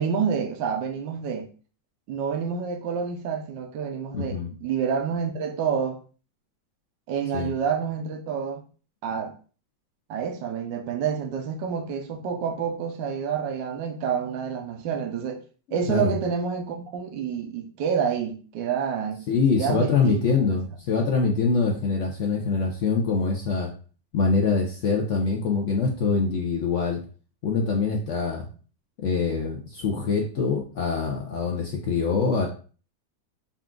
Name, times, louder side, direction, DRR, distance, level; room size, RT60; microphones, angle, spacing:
voice 1, 0.0-1.5 2.1-6.0 7.1-8.6 9.0-9.3 10.1-15.4 15.7-19.2 19.6-20.2, right 7 dB, 75° right, 1.4 m, -28 dB
voice 2, 4.1-4.5 7.3-7.5 15.7-16.2 19.3-23.7 24.1-27.0 27.4-28.5 29.0-32.5, left 4 dB, 70° left, 0.7 m, -24 dB
5.6 x 2.5 x 3.6 m
omnidirectional pair, 2.1 m